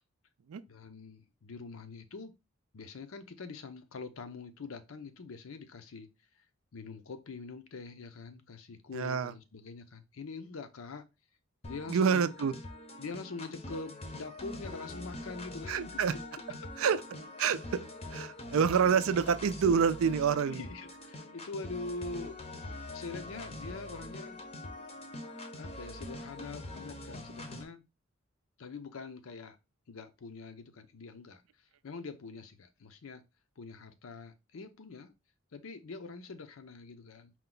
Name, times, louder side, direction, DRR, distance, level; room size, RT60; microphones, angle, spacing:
voice 1, 0.7-2.3 2.7-6.1 6.7-11.0 11.6-12.3 13.0-16.4 16.8-17.0 20.4-22.4 22.9-24.4 25.5-27.8 28.6-29.6 29.9-31.4 31.8-33.2 33.6-35.1 35.5-37.3, left 4 dB, 75° left, 0.6 m, -44 dB
voice 2, 8.9-9.3 11.9-12.5 15.7-16.1 16.8-17.0 17.4-17.8 18.1-20.6, right 6 dB, 75° right, 0.4 m, -27 dB
sound 1, 11.6-27.6, left 1 dB, 30° left, 0.6 m, -44 dB
4.5 x 2.2 x 3.8 m
head